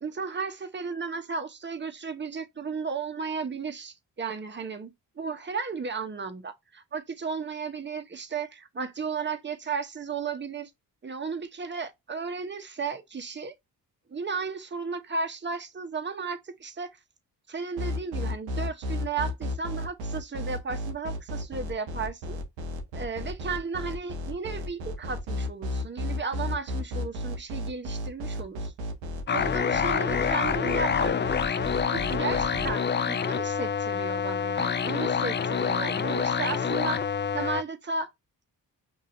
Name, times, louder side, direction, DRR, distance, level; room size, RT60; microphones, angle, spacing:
voice 1, 0.0-10.7 11.0-13.5 14.1-16.9 17.5-22.4 22.9-28.7 29.3-31.1 31.9-37.0 37.3-38.1, right 4 dB, 25° right, 0.9 m, -34 dB
sound 1, 17.8-32.7, left 1 dB, 90° right, 0.7 m, -33 dB
sound 2, 29.3-37.6, left 7 dB, 25° left, 0.4 m, -27 dB
5.4 x 2.7 x 2.5 m
hypercardioid pair, 40°, 45 cm